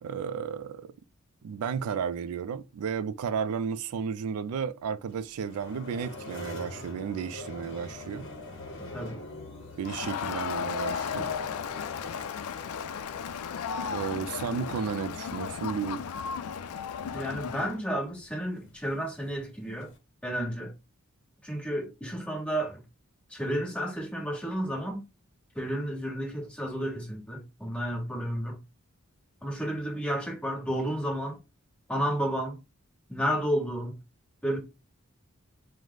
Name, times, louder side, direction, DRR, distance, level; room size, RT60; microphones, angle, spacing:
voice 1, 0.0-0.9 1.4-8.3 9.8-11.3 13.9-16.0, right 6 dB, 85° right, 0.3 m, -33 dB
sound 1, 5.1-20.0, left 2 dB, 55° left, 0.8 m, -45 dB
Crowd, 9.8-17.8, left 7 dB, 90° left, 0.4 m, -35 dB
voice 2, 17.1-19.9 20.2-20.7 21.4-22.8 23.3-25.0 25.5-28.6 29.4-31.4 31.9-32.6 33.1-34.0 34.4-34.6, equal, 5° left, 1.1 m, -31 dB
4.6 x 2.1 x 3.8 m
head